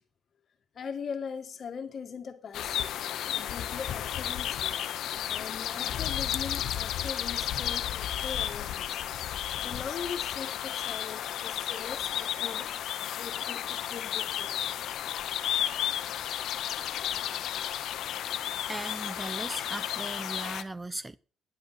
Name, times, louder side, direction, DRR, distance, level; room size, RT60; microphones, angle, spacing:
voice 1, 0.7-2.9 3.4-4.8 5.2-9.0 9.6-12.7 13.2-14.6, left 6 dB, 50° left, 1.9 m, -40 dB
sound 1, 2.5-20.6, left 11 dB, 75° left, 0.8 m, -33 dB
voice 2, 18.7-21.2, right 2 dB, 15° right, 0.7 m, -38 dB
10.5 x 8.0 x 5.9 m
cardioid pair, 90°, 0 cm